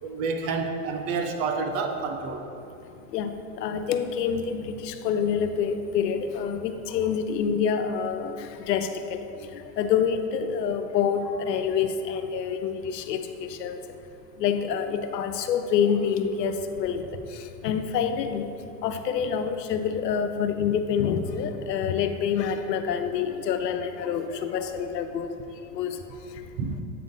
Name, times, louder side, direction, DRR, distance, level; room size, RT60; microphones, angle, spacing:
voice 1, 0.0-2.5 26.6-26.8, right 4 dB, 30° right, 4 dB, 0.4 m, -29 dB
voice 2, 3.6-9.2 9.6-13.8 14.4-17.0 17.6-18.5 18.8-25.3 25.7-26.0, left 7 dB, 90° left, 8 dB, 0.6 m, -27 dB
8.5 x 3.8 x 3.6 m, 2.7 s
hypercardioid pair, 120°, 48 cm